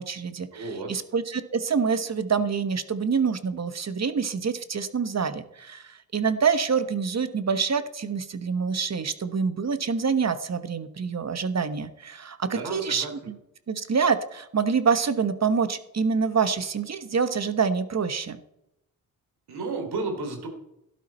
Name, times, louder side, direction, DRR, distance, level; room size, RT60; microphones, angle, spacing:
voice 1, 0.0-13.4 13.7-18.4, right 5 dB, 40° right, 11 dB, 1.2 m, -26 dB
voice 2, 0.5-1.0 12.4-13.1 19.5-20.5, right 3 dB, 70° right, 4 dB, 3.4 m, -32 dB
12.0 x 12.0 x 4.3 m, 0.83 s
supercardioid pair, 55°, 40 cm